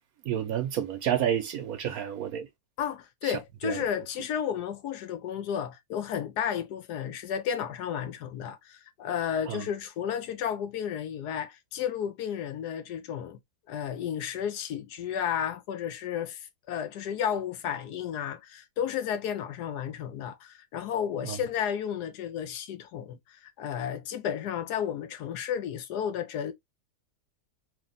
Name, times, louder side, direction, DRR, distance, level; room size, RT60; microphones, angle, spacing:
voice 1, 0.2-2.5 3.2-3.3 3.6-3.8 9.5-9.6 21.2-21.4, right 10 dB, 70° right, 0.9 m, -30 dB
voice 2, 2.8-13.4 13.7-26.5, left 9 dB, 75° left, 1.2 m, -32 dB
3.3 x 2.5 x 3.7 m
omnidirectional pair, 1.8 m